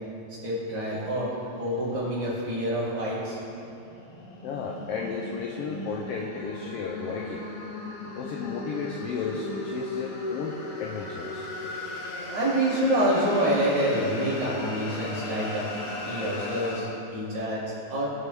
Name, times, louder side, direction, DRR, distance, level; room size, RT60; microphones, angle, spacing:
voice 1, 0.4-1.3 1.6-3.4 12.3-15.7 16.0-18.1, right 1 dB, 70° right, -9 dB, 4.4 m, -27 dB
sound 1, 3.6-16.8, left 2 dB, 70° left, 2.4 m, -37 dB
voice 2, 4.4-7.5 8.0-11.5, left 5 dB, 85° left, 1 dB, 1.3 m, -33 dB
20.0 x 7.2 x 3.5 m, 2.8 s
omnidirectional pair, 3.5 m